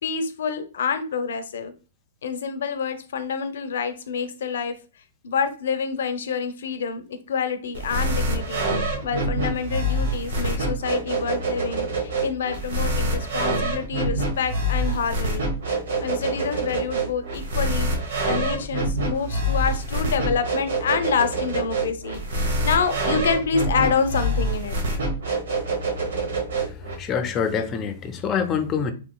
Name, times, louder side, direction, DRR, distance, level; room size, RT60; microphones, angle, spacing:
voice 1, 0.0-1.7 2.2-4.8 5.2-8.7 9.0-15.5 16.0-24.8, left 6 dB, 75° left, 0.5 m, -27 dB
sound 1, 7.7-26.9, right 1 dB, 75° right, 1.1 m, -26 dB
voice 2, 26.5-28.9, left 6 dB, 25° left, 0.5 m, -26 dB
3.5 x 2.9 x 2.2 m
hypercardioid pair, 135°, 0 cm